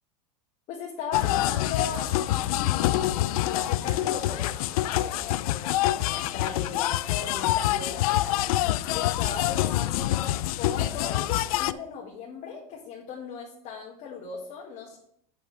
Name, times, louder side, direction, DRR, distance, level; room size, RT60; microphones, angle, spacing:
voice 1, 0.7-8.3 8.9-15.0, left 6 dB, 40° left, -2 dB, 1.8 m, -38 dB
sound 1, 1.1-11.7, left 14 dB, 70° left, 0.5 m, -26 dB
8.4 x 7.2 x 3.4 m, 0.69 s
supercardioid pair, 135°, 19 cm